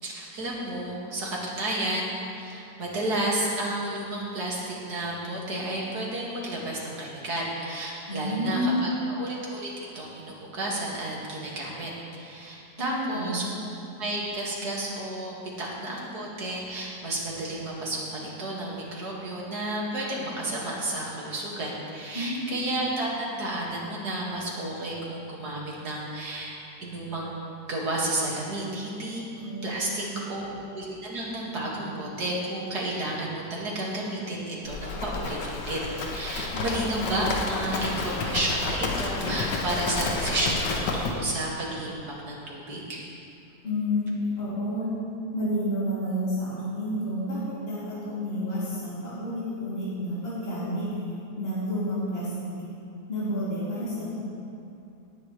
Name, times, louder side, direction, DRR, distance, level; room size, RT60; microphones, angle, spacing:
voice 1, 0.0-27.3 27.7-29.2 29.6-43.0, right 1 dB, 70° right, -4 dB, 2.7 m, -32 dB
voice 2, 8.1-9.0 12.8-13.6 22.1-22.6 29.4-30.3 36.5-36.9 43.6-44.9 45.3-50.9 51.4-52.5 53.1-54.2, equal, 35° left, -11 dB, 3.2 m, -30 dB
Livestock farm animals working animals, 34.7-41.1, left 3 dB, 85° left, 1.7 m, -30 dB
18.0 x 9.7 x 3.3 m, 2.8 s
omnidirectional pair, 1.8 m